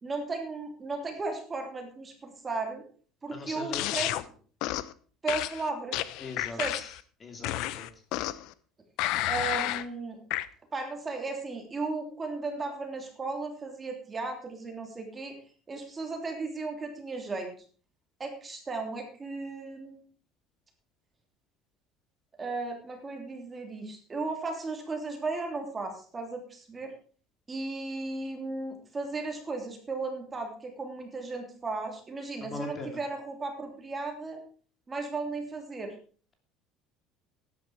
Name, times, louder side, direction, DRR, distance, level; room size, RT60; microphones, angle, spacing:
voice 1, 0.0-2.8 3.2-4.1 5.2-6.1 6.5-6.8 9.3-10.2 10.7-15.4 15.7-17.5 18.2-20.0 22.4-26.9 27.5-34.4 34.9-35.9, right 3 dB, 20° right, 3 dB, 3.0 m, -35 dB
voice 2, 3.3-3.9 6.2-6.9 7.2-7.9 32.4-33.0, left 2 dB, 25° left, 4 dB, 2.7 m, -40 dB
sound 1, 3.7-4.2 4.6-4.9 5.3-7.0 7.4-8.5 9.0-9.9 10.3-10.5, left 15 dB, 70° left, 0.8 m, -31 dB
12.5 x 10.5 x 4.6 m, 0.42 s
cardioid pair, 135°, 0 cm